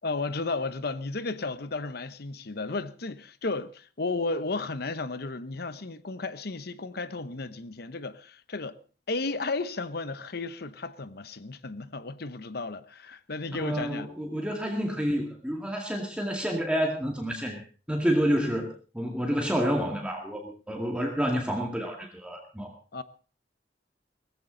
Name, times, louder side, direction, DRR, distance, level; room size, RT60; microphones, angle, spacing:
voice 1, 0.0-8.8 9.1-14.1 22.9-23.0, left 3 dB, 60° left, 1.0 m, -33 dB
voice 2, 13.5-17.6 17.9-22.7, equal, 5° right, 2.1 m, -29 dB
19.0 x 15.0 x 4.0 m
head